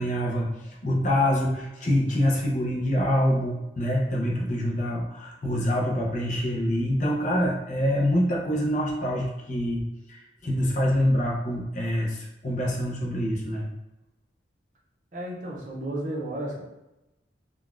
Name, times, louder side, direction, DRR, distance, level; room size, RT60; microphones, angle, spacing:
voice 1, 0.0-9.8 10.1-13.6, equal, 40° left, -2 dB, 0.6 m, -25 dB
voice 2, 15.1-16.6, right 1 dB, 40° right, -2 dB, 0.6 m, -33 dB
3.8 x 2.2 x 2.4 m, 0.96 s
head